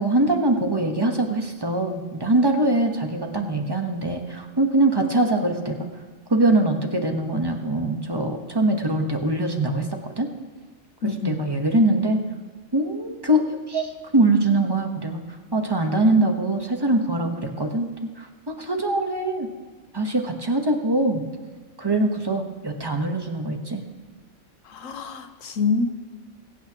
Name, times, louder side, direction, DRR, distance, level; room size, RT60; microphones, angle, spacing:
voice 1, 0.0-5.9 6.3-9.9 10.2-10.3 11.0-12.2 12.7-15.2 15.5-17.3 17.6-19.5 19.9-21.2 21.8-23.8, right 2 dB, 20° right, 3 dB, 1.1 m, -23 dB
voice 2, 11.0-11.4 24.7-25.9, left 4 dB, 85° left, 8 dB, 1.2 m, -26 dB
22.0 x 8.8 x 2.9 m, 1.4 s
omnidirectional pair, 1.3 m